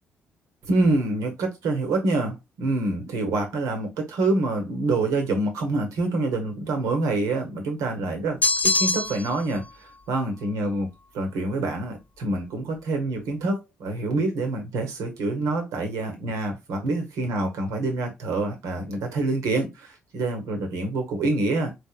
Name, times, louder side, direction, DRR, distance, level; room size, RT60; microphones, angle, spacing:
voice 1, 0.6-10.9 11.1-21.7, right 2 dB, 65° right, 1.2 m, -26 dB
sound 1, 8.4-9.4, left 3 dB, 25° left, 0.5 m, -23 dB
4.0 x 3.5 x 2.3 m
hypercardioid pair, 45°, 6 cm